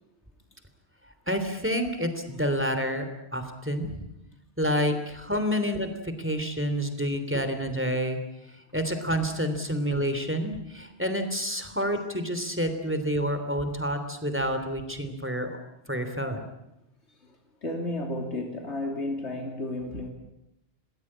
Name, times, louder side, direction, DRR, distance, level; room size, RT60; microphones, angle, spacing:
voice 1, 1.3-4.0 4.6-8.2 8.7-15.5 15.9-16.4, equal, 10° right, 7 dB, 3.1 m, -28 dB
voice 2, 17.6-20.1, left 1 dB, 85° left, 2 dB, 3.3 m, -32 dB
28.0 x 19.5 x 8.7 m, 0.91 s
omnidirectional pair, 1.1 m